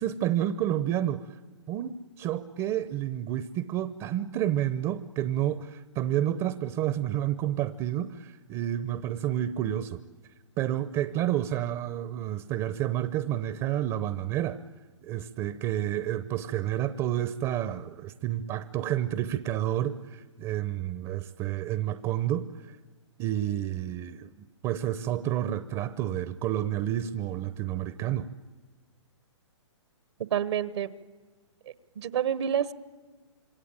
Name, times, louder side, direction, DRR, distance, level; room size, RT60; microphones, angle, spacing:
voice 1, 0.0-1.4 1.7-10.0 10.6-14.6 15.0-22.8 23.2-28.3, right 12 dB, 25° right, 0.8 m, -30 dB
voice 2, 30.3-30.9 32.0-32.7, right 9 dB, 60° right, 1.1 m, -28 dB
27.0 x 23.5 x 8.9 m
hypercardioid pair, 140°, 16 cm